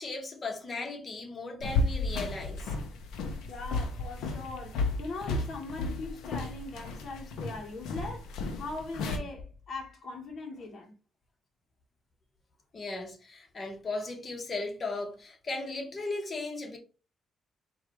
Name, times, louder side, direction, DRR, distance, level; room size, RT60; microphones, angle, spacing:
voice 1, 0.0-2.7 12.7-16.8, left 3 dB, 40° left, 1.5 m, -36 dB
sound 1, 1.6-9.2, left 3 dB, 85° left, 0.8 m, -33 dB
voice 2, 3.5-10.9, left 3 dB, 55° left, 1.3 m, -40 dB
4.7 x 2.7 x 3.2 m
cardioid pair, 70°, 0 cm